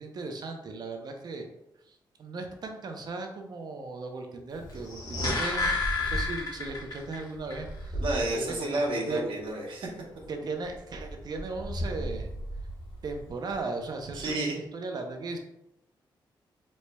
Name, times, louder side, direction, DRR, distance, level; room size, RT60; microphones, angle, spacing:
voice 1, 0.0-1.5 1.9-8.0 8.3-9.2 10.3-12.3 13.0-15.4, right 3 dB, 55° right, 4 dB, 0.6 m, -37 dB
Wind, 4.5-14.4, right 1 dB, 75° left, 1.4 m, -39 dB
sound 1, 4.8-7.2 7.5-7.6, left 3 dB, 50° left, 1.1 m, -30 dB
voice 2, 7.9-9.9 14.2-14.6, right 2 dB, 85° right, -2 dB, 1.0 m, -30 dB
4.3 x 3.1 x 2.2 m, 0.84 s
wide cardioid pair, 120°, 8 cm